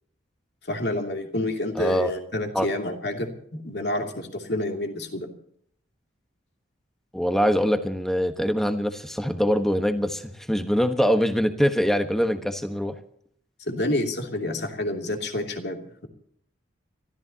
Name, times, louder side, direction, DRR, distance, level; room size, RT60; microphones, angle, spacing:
voice 1, 0.6-5.3 13.6-16.1, left 1 dB, 55° left, 3 dB, 2.8 m, -29 dB
voice 2, 1.7-2.1 2.5-2.7 7.1-12.9, equal, ahead, 7 dB, 1.2 m, -23 dB
29.5 x 14.0 x 2.9 m, 0.67 s
head